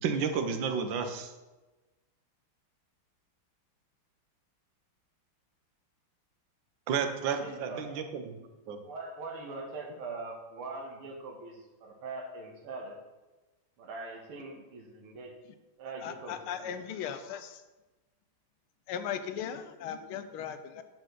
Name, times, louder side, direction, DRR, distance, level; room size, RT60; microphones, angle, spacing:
voice 1, 0.0-1.3 6.9-8.4 8.7-8.8, right 6 dB, 65° right, 7 dB, 1.5 m, -31 dB
voice 2, 7.2-8.0 8.6-13.0 13.8-15.3 15.8-16.8, right 3 dB, 90° right, 0 dB, 2.2 m, -42 dB
voice 3, 16.0-17.6 18.9-20.8, left 8 dB, 85° left, 10 dB, 1.6 m, -37 dB
9.8 x 7.3 x 3.9 m, 1.1 s
omnidirectional pair, 2.3 m